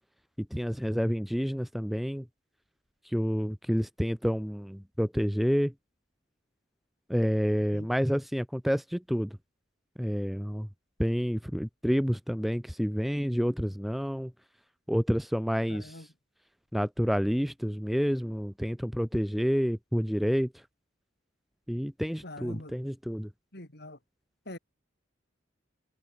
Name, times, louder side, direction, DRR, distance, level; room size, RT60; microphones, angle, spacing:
voice 1, 0.5-2.2 3.1-5.7 7.1-9.3 10.0-10.7 11.0-14.3 14.9-15.9 16.7-20.5 21.7-23.3, equal, ahead, 0.5 m, -29 dB
voice 2, 15.7-16.1 22.2-22.7 23.5-24.0 24.4-24.6, left 1 dB, 55° left, 6.5 m, -43 dB
head